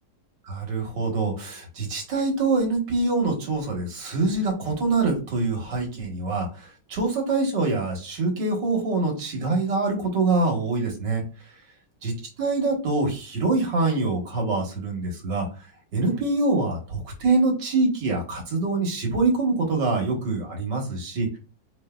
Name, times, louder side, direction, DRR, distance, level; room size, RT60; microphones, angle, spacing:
voice 1, 0.5-11.2 12.0-12.1 12.4-15.5 15.9-21.4, right 3 dB, 85° right, 1 dB, 2.0 m, -25 dB
4.6 x 3.3 x 2.3 m, 0.33 s
omnidirectional pair, 1.9 m